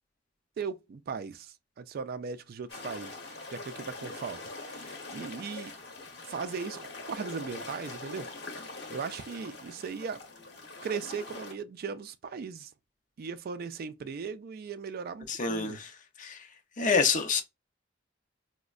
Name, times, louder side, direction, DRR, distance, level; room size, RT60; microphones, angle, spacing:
voice 1, 0.6-5.7 6.2-8.3 8.9-10.2 10.8-12.7 13.2-15.8, right 5 dB, 55° right, 0.3 m, -38 dB
sound 1, 2.7-11.5, left 2 dB, 60° left, 1.0 m, -43 dB
voice 2, 15.3-15.9 16.2-16.5 16.8-17.4, left 5 dB, 45° left, 0.6 m, -27 dB
4.9 x 2.1 x 2.3 m
head